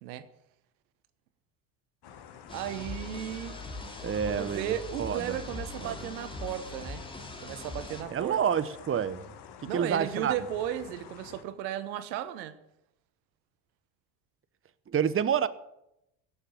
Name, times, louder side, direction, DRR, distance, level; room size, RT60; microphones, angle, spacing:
sound 1, 2.0-11.4, left 8 dB, 50° left, 1.8 m, -49 dB
sound 2, 2.5-8.0, left 2 dB, 10° left, 2.6 m, -41 dB
voice 1, 2.5-3.6 4.2-7.0 7.4-8.4 9.7-12.6, right 11 dB, 90° right, 1.3 m, -35 dB
voice 2, 4.0-4.7 5.0-5.4 5.8-5.9 8.1-9.3 9.7-10.3 14.9-15.5, right 8 dB, 25° right, 0.9 m, -28 dB
16.5 x 7.2 x 9.3 m
supercardioid pair, 85°, 50 cm